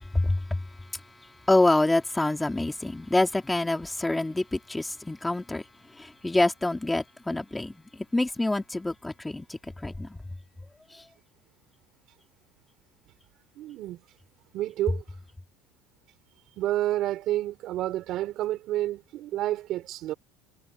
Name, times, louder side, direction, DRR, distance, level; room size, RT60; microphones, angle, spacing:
voice 1, 0.0-1.0 1.5-5.6 5.9-10.2 10.9-11.0, left 2 dB, 5° left, 2.8 m, -27 dB
voice 2, 13.6-14.0 14.5-15.0 16.6-20.1, right 14 dB, 50° right, 4.0 m, -29 dB
cardioid pair, 150°, 0 cm